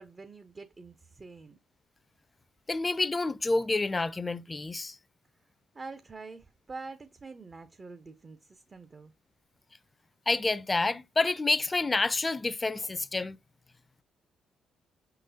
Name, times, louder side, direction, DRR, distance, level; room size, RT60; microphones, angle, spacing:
voice 1, 0.0-1.6 5.7-9.1, right 3 dB, 35° right, 0.5 m, -46 dB
voice 2, 2.7-5.0 10.3-13.4, left 3 dB, 25° left, 0.4 m, -28 dB
5.2 x 3.8 x 2.6 m
hypercardioid pair, 50°, 0 cm